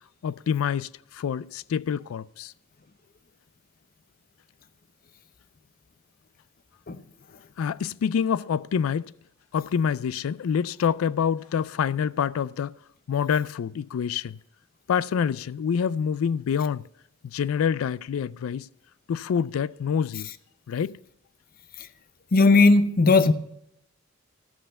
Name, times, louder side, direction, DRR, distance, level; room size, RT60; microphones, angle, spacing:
voice 1, 0.2-2.5 7.6-9.1 9.5-12.7 13.1-14.4 14.9-16.8 17.2-18.7 19.1-20.3 20.7-21.0, left 7 dB, 85° left, 0.3 m, -26 dB
voice 2, 22.3-23.3, left 3 dB, 45° left, 0.7 m, -17 dB
14.0 x 5.6 x 6.6 m
head